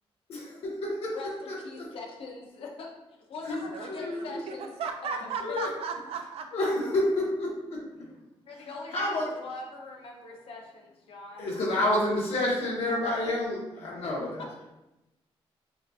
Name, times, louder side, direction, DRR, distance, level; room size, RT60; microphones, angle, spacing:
voice 1, 0.3-1.2 1.5-1.9 3.4-3.6 3.9-4.4 5.4-5.7 6.5-7.8 8.9-9.3 11.4-14.3, left 1 dB, 85° left, -4 dB, 1.3 m, -29 dB
voice 2, 1.1-2.9 3.3-4.7 5.0-5.6 8.4-11.8 13.0-13.4 14.0-14.3, left 3 dB, 70° left, 0 dB, 0.8 m, -42 dB
voice 3, 3.7-6.5, right 5 dB, 80° right, 5 dB, 0.5 m, -36 dB
5.7 x 2.4 x 2.6 m, 0.96 s
wide cardioid pair, 180°, 10 cm